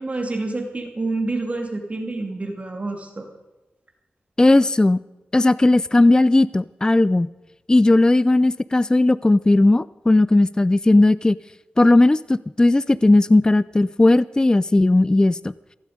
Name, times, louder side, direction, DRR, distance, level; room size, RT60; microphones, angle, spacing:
voice 1, 0.0-3.3, right 2 dB, 35° right, 3 dB, 2.7 m, -28 dB
voice 2, 4.4-5.0 5.3-7.3 7.7-11.4 11.8-15.5, left 2 dB, 20° left, 18 dB, 0.4 m, -16 dB
16.0 x 16.0 x 5.1 m, 1.1 s
cardioid pair, 65°, 4 cm